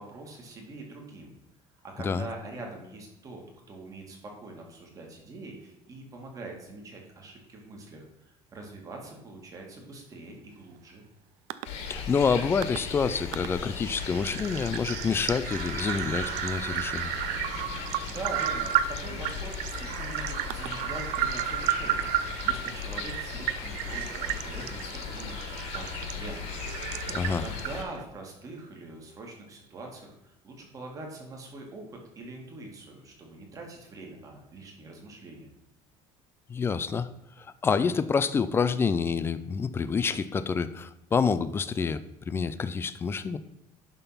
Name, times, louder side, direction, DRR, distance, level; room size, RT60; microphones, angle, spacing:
voice 1, 0.0-1.3 1.8-11.1 18.1-26.6 27.3-35.5, right 2 dB, 30° right, 1 dB, 2.0 m, -43 dB
sound 1, 11.5-11.7 12.6-12.8 13.3-13.5 13.8-28.0, right 12 dB, 85° right, 0.5 m, -33 dB
sound 2, 11.6-27.8, left 6 dB, 65° left, 1.8 m, -37 dB
voice 2, 11.9-17.1 27.1-27.4 36.5-37.1 37.4-43.4, left 5 dB, 20° left, 14 dB, 0.4 m, -27 dB
11.0 x 3.7 x 5.7 m, 0.86 s
cardioid pair, 150°, 12 cm